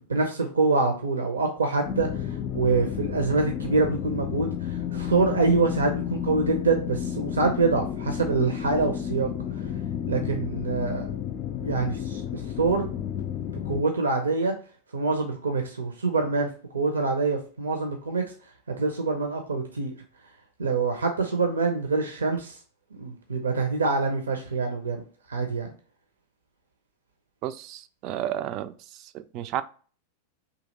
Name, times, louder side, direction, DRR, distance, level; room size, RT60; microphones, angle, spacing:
voice 1, 0.0-2.1 2.5-9.3 10.1-11.1 11.6-12.9 13.6-14.5 14.9-16.5 16.7-18.2 18.8-19.9 20.6-22.6 23.0-25.0 25.3-25.7, right 3 dB, 70° right, 0.6 m, -25 dB
sound 1, 1.9-13.8, left 9 dB, 40° left, 0.4 m, -32 dB
voice 2, 27.4-29.6, right 12 dB, 40° right, 0.3 m, -32 dB
4.0 x 2.8 x 3.9 m
figure-of-eight pair, 90°, 0 cm